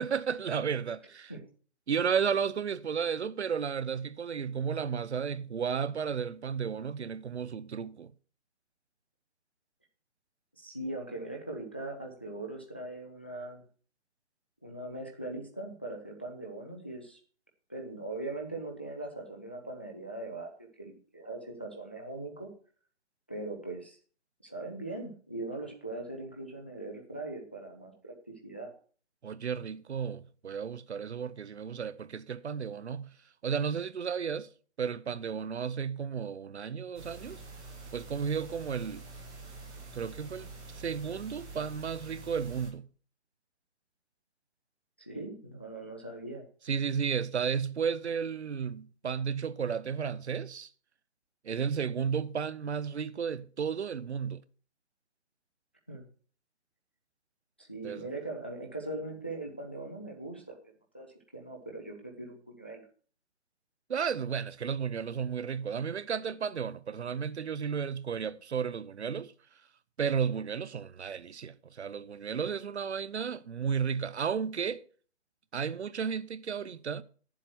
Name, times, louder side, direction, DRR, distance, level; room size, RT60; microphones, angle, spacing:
voice 1, 0.0-1.3 1.9-8.1 29.2-33.1 33.4-34.5 34.8-37.4 37.9-39.1 39.9-42.9 46.7-50.7 51.4-54.4 57.8-58.1 63.9-69.3 70.0-74.8 75.5-77.0, right 7 dB, 75° right, 0.9 m, -33 dB
voice 2, 10.6-13.6 14.6-17.2 17.7-22.5 23.3-24.0 24.4-28.7 45.0-46.4 55.9-56.1 57.6-60.6 60.9-61.1 61.3-62.8, right 2 dB, 10° left, 0.5 m, -40 dB
sound 1, 36.9-42.7, right 3 dB, 10° right, 0.8 m, -46 dB
10.5 x 7.4 x 6.0 m
hypercardioid pair, 160°, 34 cm